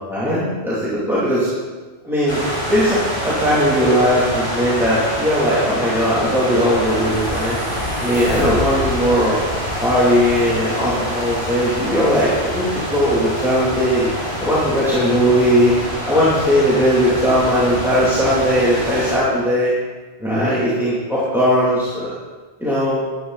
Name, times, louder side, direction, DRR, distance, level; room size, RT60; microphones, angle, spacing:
voice 1, 0.1-1.5 2.0-2.4 2.7-7.6 8.0-9.4 9.8-14.1 14.4-15.7 16.1-19.7 20.2-22.2 22.6-23.0, equal, ahead, -10 dB, 2.9 m, -18 dB
sound 1, 2.3-19.2, equal, 25° right, 4.6 m, -26 dB
14.0 x 11.0 x 4.1 m, 1.4 s
omnidirectional pair, 1.1 m